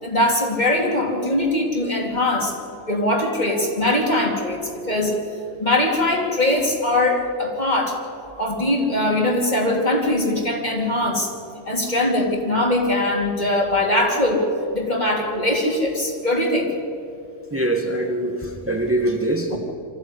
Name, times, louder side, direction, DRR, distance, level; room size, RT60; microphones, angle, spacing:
voice 1, 0.0-2.5 2.9-5.1 5.6-8.0 8.4-11.3 11.6-14.5 14.7-16.7 19.5-19.6, left 1 dB, 35° left, 0 dB, 3.2 m, -21 dB
voice 2, 17.5-19.6, right 1 dB, 10° right, 2 dB, 1.5 m, -23 dB
24.0 x 14.5 x 10.0 m, 2.5 s
omnidirectional pair, 1.3 m